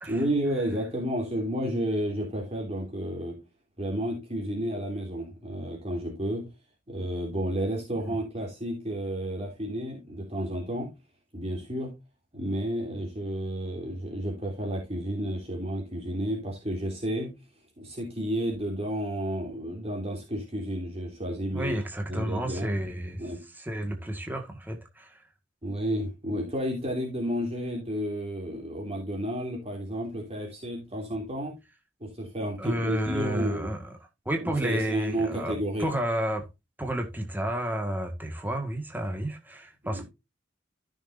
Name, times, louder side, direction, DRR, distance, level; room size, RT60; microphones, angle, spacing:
voice 1, 0.0-3.4 3.8-6.5 6.9-10.9 11.3-11.9 12.3-17.3 17.8-21.8 22.1-22.7 23.2-23.4 25.6-31.5 32.0-33.7 34.6-35.9 39.9-40.0, equal, 35° right, 3.1 m, -31 dB
voice 2, 21.5-23.3 23.6-25.2 32.6-33.9 34.3-36.5 36.8-40.1, right 1 dB, 10° right, 1.8 m, -31 dB
14.0 x 6.5 x 2.7 m
head